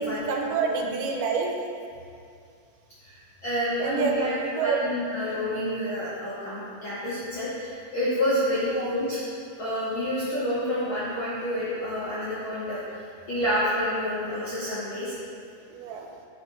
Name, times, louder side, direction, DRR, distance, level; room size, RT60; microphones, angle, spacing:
voice 1, 0.0-1.5 3.8-4.8 8.7-8.9 15.7-16.1, right 5 dB, 85° right, 1 dB, 2.3 m, -28 dB
voice 2, 0.6-0.9 3.0-9.2 9.6-13.0 13.3-15.1, equal, 65° left, -10 dB, 1.2 m, -29 dB
8.0 x 5.6 x 3.0 m, 2.3 s
omnidirectional pair, 3.7 m